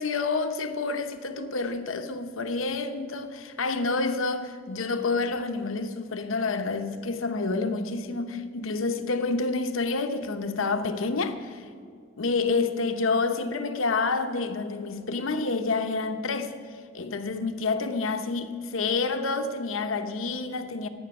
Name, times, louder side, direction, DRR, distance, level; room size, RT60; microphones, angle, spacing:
voice 1, 0.0-11.7 12.2-16.5 16.9-20.9, left 3 dB, 90° left, 0.9 m, -28 dB
17.0 x 6.2 x 9.9 m
head